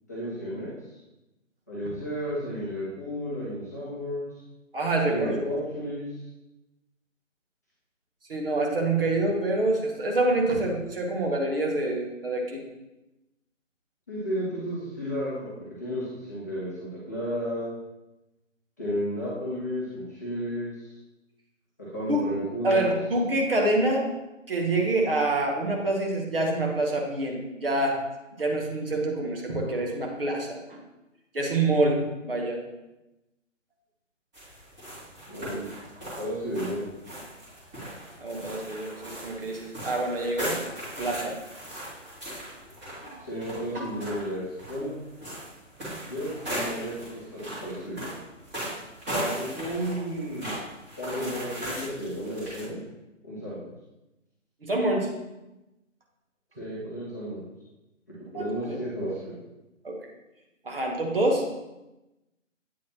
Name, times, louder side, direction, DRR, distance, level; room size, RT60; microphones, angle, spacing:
voice 1, 0.1-0.7 1.7-4.4 5.0-6.2 14.1-17.7 18.8-20.9 21.8-22.9 35.3-35.7 36.2-36.9 43.2-44.9 46.1-48.1 49.1-50.5 51.0-52.8 53.2-53.6 56.6-57.4 58.3-59.3, equal, 15° left, -10 dB, 0.7 m, -33 dB
voice 2, 4.7-5.3 8.3-12.6 22.1-22.2 22.6-24.0 24.5-28.0 28.4-30.8 31.3-32.6 38.2-41.4 43.0-43.1 43.7-43.9 54.6-55.1 58.3-58.8 59.8-60.0 60.6-61.4, right 2 dB, 45° right, 0 dB, 1.2 m, -26 dB
sound 1, 34.3-52.6, right 1 dB, 15° right, 1.8 m, -38 dB
8.4 x 3.9 x 2.9 m, 0.98 s
figure-of-eight pair, 145°, 38 cm